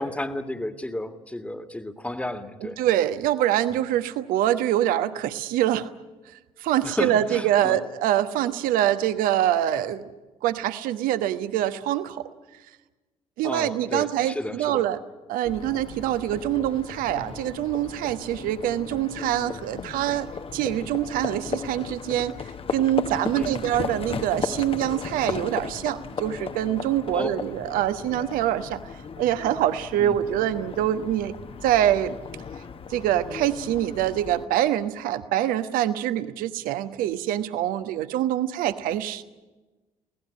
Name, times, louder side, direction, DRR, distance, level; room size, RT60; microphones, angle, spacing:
voice 1, 0.0-2.8 3.7-3.8 6.8-7.8 13.4-14.8 23.3-23.7 27.1-27.3 30.0-30.2, left 1 dB, 5° left, 8 dB, 1.9 m, -32 dB
voice 2, 2.8-5.9 6.6-10.1 10.4-12.3 13.4-15.0 15.3-22.3 22.7-28.8 29.2-31.3 31.6-32.2 32.9-39.2, right 12 dB, 55° right, 12 dB, 1.2 m, -25 dB
Livestock farm animals working animals, 15.5-34.4, left 6 dB, 35° left, 1.2 m, -36 dB
24.0 x 18.0 x 10.0 m, 1.2 s
figure-of-eight pair, 50°, 17 cm